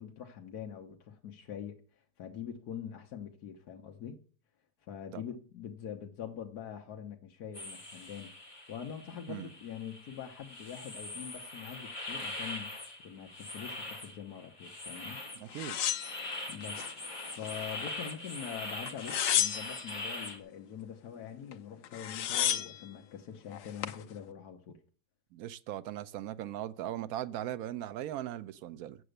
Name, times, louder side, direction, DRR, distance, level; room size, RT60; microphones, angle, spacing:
voice 1, 0.0-1.8 2.2-4.2 4.9-8.3 8.7-15.2 16.5-24.8, left 8 dB, 60° left, 1.5 m, -44 dB
sound 1, 7.5-20.4, left 2 dB, 25° left, 1.4 m, -42 dB
voice 2, 15.4-15.9 25.3-29.0, right 12 dB, 70° right, 0.9 m, -39 dB
sound 2, 15.5-16.9 17.3-18.1 18.9-20.0 21.5-21.6 21.8-22.8 23.5-24.0, left 10 dB, 75° left, 1.4 m, -32 dB
7.9 x 7.5 x 6.6 m
omnidirectional pair, 2.0 m